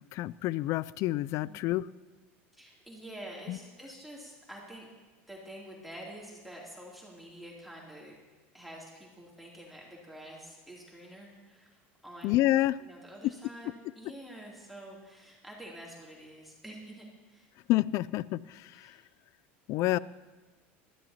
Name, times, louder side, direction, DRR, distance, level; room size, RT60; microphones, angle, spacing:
voice 1, 0.1-1.9 3.5-3.6 12.2-12.8 17.7-18.7 19.7-20.0, left 16 dB, 55° left, 20 dB, 0.3 m, -28 dB
voice 2, 2.5-4.9 5.3-8.2 8.5-12.4 12.8-17.5 18.7-19.1, right 1 dB, ahead, -4 dB, 2.9 m, -48 dB
19.5 x 13.0 x 2.9 m, 1.3 s
supercardioid pair, 105°, 6 cm